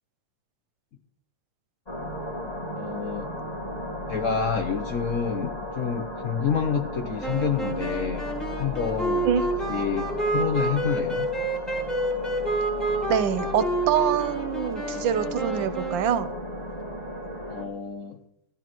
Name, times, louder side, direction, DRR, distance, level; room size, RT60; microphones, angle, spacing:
sound 1, 1.9-17.6, left 1 dB, 20° left, 2.4 m, -35 dB
voice 1, 2.7-3.3 4.1-8.3 8.6-11.3 17.5-18.2, left 6 dB, 60° left, 6 dB, 0.8 m, -28 dB
sound 2, 7.2-16.4, right 2 dB, ahead, 3.3 m, -29 dB
voice 2, 13.1-16.3, right 8 dB, 75° right, 12 dB, 1.5 m, -25 dB
15.0 x 13.0 x 3.0 m, 0.80 s
omnidirectional pair, 2.1 m